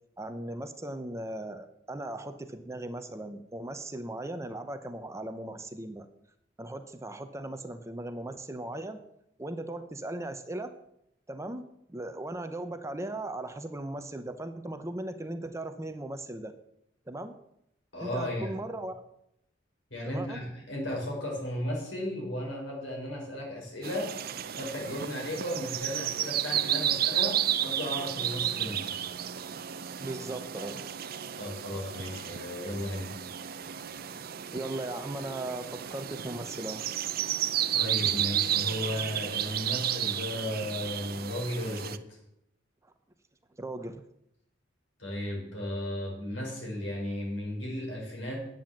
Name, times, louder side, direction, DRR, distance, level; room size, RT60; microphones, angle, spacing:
voice 1, 0.2-6.1 6.6-9.0 9.4-10.7 11.3-16.5 17.1-17.4 18.0-19.0 20.0-20.4 30.0-30.8 33.9-34.1 34.5-36.9 43.6-44.0, right 1 dB, 15° right, 8 dB, 0.8 m, -38 dB
voice 2, 17.9-18.5 19.9-24.1 24.6-28.9 31.4-33.1 37.7-42.2 45.0-48.5, left 1 dB, 75° left, -1 dB, 5.6 m, -35 dB
sound 1, 23.8-42.0, right 10 dB, 50° right, 0.6 m, -32 dB
10.0 x 9.1 x 7.4 m, 0.78 s
head